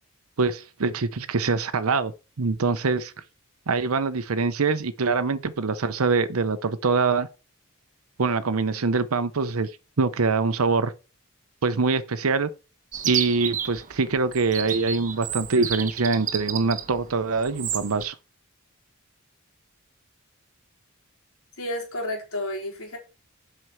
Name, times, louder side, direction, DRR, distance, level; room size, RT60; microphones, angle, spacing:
voice 1, 0.4-2.1 2.4-3.1 3.7-7.3 8.2-9.7 10.0-10.9 11.6-12.5 13.0-18.1, right 4 dB, 85° right, 0.7 m, -24 dB
Chirp tweet, 12.9-18.1, right 9 dB, 35° right, 1.1 m, -32 dB
voice 2, 21.6-23.0, left 1 dB, 85° left, 4.3 m, -31 dB
7.8 x 6.1 x 5.6 m
head